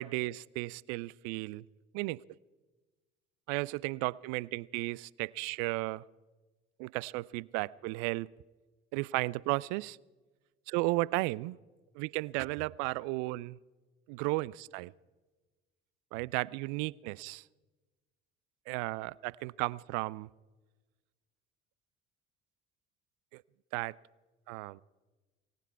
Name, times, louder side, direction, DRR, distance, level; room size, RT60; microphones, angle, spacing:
voice 1, 0.0-1.6 1.9-2.2 3.5-6.0 6.8-8.3 8.9-10.0 10.7-11.6 12.0-13.6 14.1-14.9 16.1-17.4 18.7-20.3 23.3-23.4 23.7-24.0 24.5-24.8, right 22 dB, 60° right, 25 dB, 0.4 m, -34 dB
18.0 x 17.5 x 4.6 m, 1.3 s
figure-of-eight pair, 50°, 33 cm